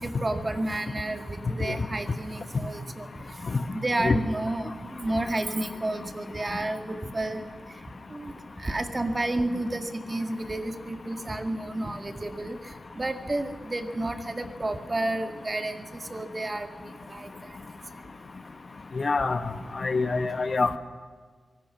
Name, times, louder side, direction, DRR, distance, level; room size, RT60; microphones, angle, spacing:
voice 1, 0.0-3.1 3.7-7.4 8.1-8.3 8.6-12.6 13.0-15.8 16.1-16.7 17.1-17.3, right 2 dB, 30° right, 7 dB, 2.0 m, -31 dB
voice 2, 18.9-20.8, left 4 dB, 50° left, 10 dB, 1.3 m, -26 dB
25.0 x 18.5 x 6.0 m, 1.5 s
wide cardioid pair, 80°, 0 cm